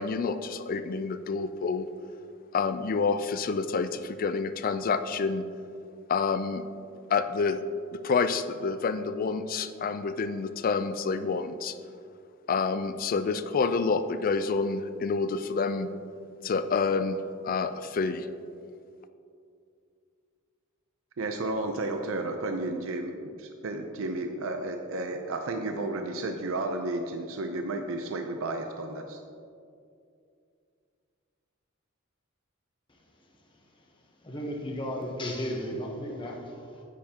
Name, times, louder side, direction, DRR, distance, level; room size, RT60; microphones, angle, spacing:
voice 1, 0.0-1.9 2.5-5.5 6.1-6.6 7.1-7.6 7.9-11.8 12.5-15.9 16.4-18.3, left 4 dB, 45° left, 11 dB, 0.4 m, -28 dB
voice 2, 21.2-29.2, right 2 dB, 80° right, 5 dB, 0.6 m, -32 dB
voice 3, 34.2-36.8, equal, 25° left, 0 dB, 0.9 m, -34 dB
10.0 x 8.6 x 2.8 m, 2.4 s
head